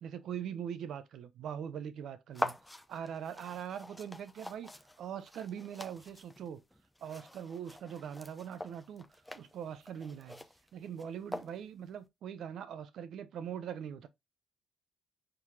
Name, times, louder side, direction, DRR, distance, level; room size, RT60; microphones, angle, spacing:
voice 1, 0.0-2.6 2.9-4.7 5.0-6.6 7.0-9.1 9.3-10.4 10.7-14.1, right 8 dB, 70° right, 0.7 m, -42 dB
sound 1, 2.3-11.9, left 1 dB, 10° left, 0.5 m, -44 dB
4.7 x 3.8 x 2.7 m
cardioid pair, 90°, 0 cm